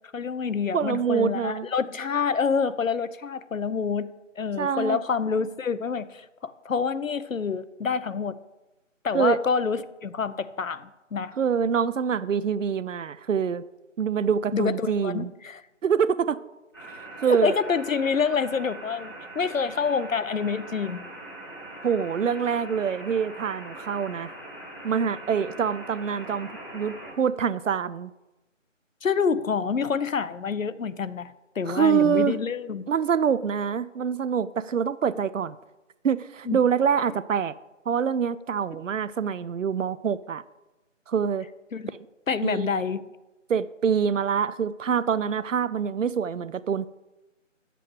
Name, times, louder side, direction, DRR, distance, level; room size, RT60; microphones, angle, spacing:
voice 1, 0.1-4.1 4.4-8.4 9.0-11.3 14.5-15.6 17.3-21.1 29.0-32.9 36.5-36.6 41.7-41.9 42.3-43.0, left 5 dB, 80° left, 15 dB, 0.6 m, -27 dB
voice 2, 0.7-1.7 4.6-5.0 9.1-9.4 11.4-13.6 14.0-15.3 15.8-16.4 17.2-17.5 21.8-24.3 24.8-28.1 31.7-32.4 32.9-35.6 36.0-37.5 37.9-40.4 41.1-41.5 42.4-42.7 43.5-46.9, right 7 dB, 75° right, 17 dB, 0.5 m, -25 dB
sound 1, 16.7-27.1, right 1 dB, 15° left, 0.9 m, -42 dB
10.0 x 7.6 x 3.3 m, 1.0 s
figure-of-eight pair, 160°, 39 cm